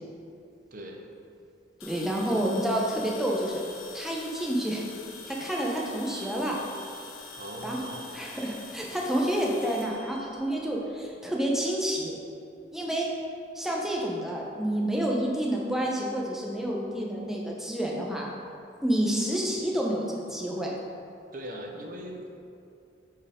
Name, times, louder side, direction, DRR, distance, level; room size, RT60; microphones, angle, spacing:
voice 1, 0.7-1.0 7.3-8.1 21.3-22.3, right 1 dB, 45° right, 1 dB, 0.8 m, -40 dB
sound 1, 1.8-11.1, left 4 dB, 90° left, 0.7 m, -45 dB
voice 2, 1.8-3.6 3.9-4.9 5.3-6.6 7.6-7.8 8.1-12.1 12.7-13.1 13.5-18.3 18.8-20.7, right 1 dB, ahead, -3 dB, 0.7 m, -29 dB
8.4 x 4.6 x 3.7 m, 2.5 s
head